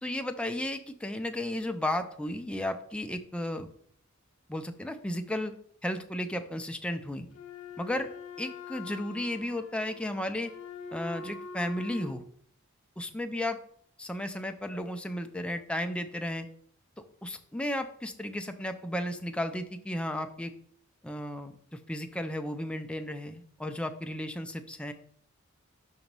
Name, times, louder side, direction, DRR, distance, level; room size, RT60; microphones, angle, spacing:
voice 1, 0.0-3.7 4.5-5.5 5.8-7.3 7.8-8.1 8.4-10.5 10.9-12.2 13.0-13.6 14.0-16.5 17.2-20.5 21.0-24.9, left 1 dB, 5° left, 6 dB, 0.4 m, -34 dB
Wind instrument woodwind instrument, 7.3-12.2, left 4 dB, 80° left, 0.8 m, -44 dB
6.3 x 2.9 x 5.2 m, 0.62 s
head